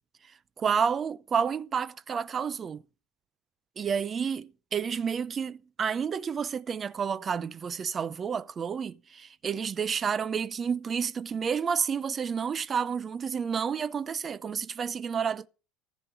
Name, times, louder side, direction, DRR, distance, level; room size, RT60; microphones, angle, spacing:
voice 1, 0.6-2.8 3.8-15.5, right 6 dB, 20° right, 0.5 m, -30 dB
14.5 x 5.1 x 7.6 m
cardioid pair, 160°, 0 cm